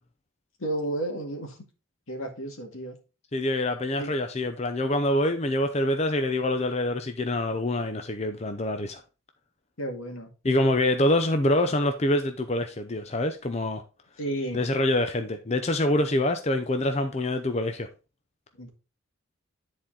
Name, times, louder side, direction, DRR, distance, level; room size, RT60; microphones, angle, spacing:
voice 1, 0.6-1.6 2.1-3.0 4.0-4.2 9.8-10.3 14.2-14.6 18.5-18.7, right 1 dB, 80° left, 2.0 m, -32 dB
voice 2, 3.3-9.0 10.4-13.8 14.5-17.9, left 1 dB, 30° left, 0.6 m, -25 dB
10.0 x 4.3 x 3.8 m
head